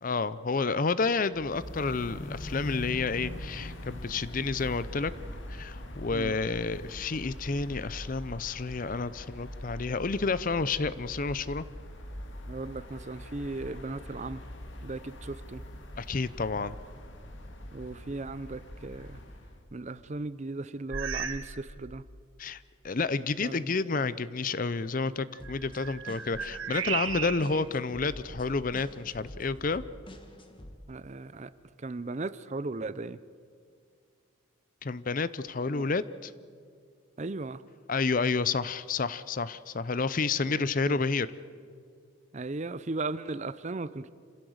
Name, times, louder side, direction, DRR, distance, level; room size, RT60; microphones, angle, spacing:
voice 1, 0.0-5.1 5.5-11.6 16.0-16.8 22.4-29.8 34.8-36.3 37.9-41.3, left 4 dB, 40° left, 16 dB, 0.6 m, -30 dB
sound 1, 1.3-19.6, left 1 dB, 65° left, 2.0 m, -42 dB
voice 2, 12.4-14.4 14.8-15.6 17.7-19.2 19.7-22.0 23.4-24.0 30.9-31.5 31.8-33.2 35.7-35.9 37.2-37.6 40.4-41.0 42.3-44.1, right 3 dB, 35° right, 16 dB, 0.5 m, -37 dB
sound 2, 20.9-21.5 21.8-22.2 22.8-22.9 25.3-27.7 28.2-29.2, right 7 dB, 80° right, 1.5 m, -36 dB
sound 3, 25.4-30.7, left 1 dB, 25° left, 1.5 m, -48 dB
27.0 x 16.0 x 8.0 m, 2.2 s
head